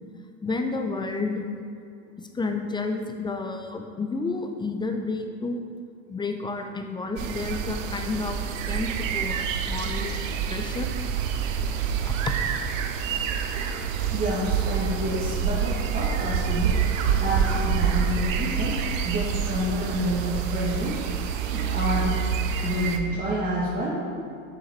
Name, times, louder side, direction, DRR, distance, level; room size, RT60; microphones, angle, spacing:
voice 1, 0.4-1.5 2.2-5.6 6.1-10.9 12.0-12.3, left 3 dB, 10° left, 4 dB, 0.4 m, -31 dB
sound 1, 7.2-23.0, right 7 dB, 75° right, 0.7 m, -27 dB
voice 2, 14.1-16.8 17.2-21.0 21.5-22.2 22.6-24.0, right 1 dB, 20° right, -7 dB, 1.4 m, -28 dB
6.4 x 5.4 x 4.4 m, 2.5 s
hypercardioid pair, 90°, 39 cm